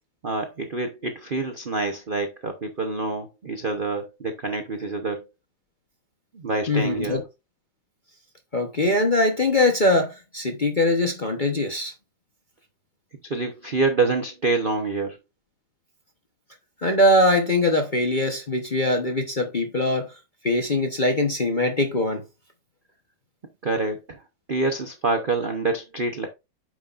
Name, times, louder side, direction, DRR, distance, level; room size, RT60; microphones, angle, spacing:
voice 1, 0.2-5.3 6.3-7.2 13.3-15.2 23.6-24.2 24.5-26.3, right 3 dB, 45° right, 0.7 m, -26 dB
voice 2, 6.7-7.2 8.5-11.9 16.8-20.1 20.4-22.2, left 1 dB, 35° left, 0.9 m, -22 dB
9.4 x 6.4 x 2.5 m
omnidirectional pair, 2.1 m